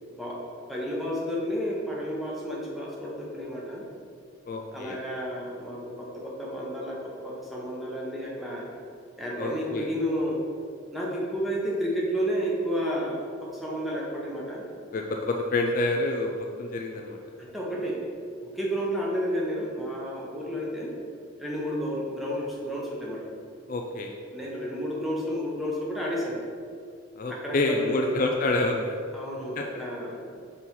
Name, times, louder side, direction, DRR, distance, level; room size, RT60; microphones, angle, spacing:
voice 1, 0.1-0.4 0.7-3.9 4.7-8.7 9.2-10.4 10.9-14.7 17.4-18.0 18.4-20.9 21.4-23.3 24.3-26.4 27.3-28.1 29.1-30.2, equal, ahead, -5 dB, 0.9 m, -31 dB
voice 2, 4.5-5.0 9.4-9.9 14.9-17.2 23.7-24.1 27.2-29.0 29.6-29.7, left 2 dB, 40° left, 1 dB, 0.4 m, -27 dB
5.5 x 4.1 x 4.5 m, 2.3 s
head